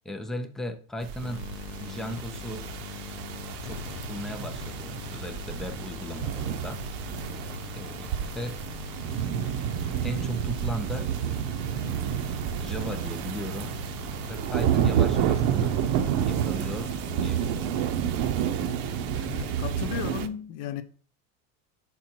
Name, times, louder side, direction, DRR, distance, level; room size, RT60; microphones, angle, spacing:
voice 1, 0.0-1.4 1.8-2.7 3.6-6.8 7.7-8.6 10.0-11.1 12.6-13.8 14.3-15.8 16.2-17.7, equal, ahead, 0.4 m, -37 dB
sound 1, 1.0-20.3, right 9 dB, 55° right, 0.7 m, -30 dB
sound 2, 1.2-20.0, left 9 dB, 85° left, 0.8 m, -42 dB
voice 2, 19.2-20.8, left 10 dB, 50° left, 0.9 m, -34 dB
6.2 x 4.2 x 4.4 m
supercardioid pair, 130°, 43 cm